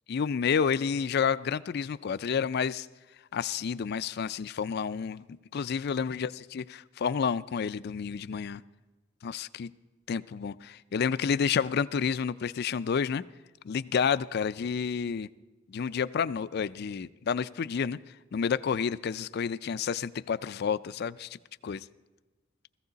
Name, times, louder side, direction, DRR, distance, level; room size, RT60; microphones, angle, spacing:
voice 1, 0.1-2.9 3.3-5.2 5.5-8.6 9.2-9.7 10.1-13.2 13.6-15.3 15.7-18.0 18.3-21.4 21.6-21.9, left 6 dB, 55° left, 16 dB, 0.4 m, -30 dB
16.5 x 15.0 x 4.0 m, 1.2 s
head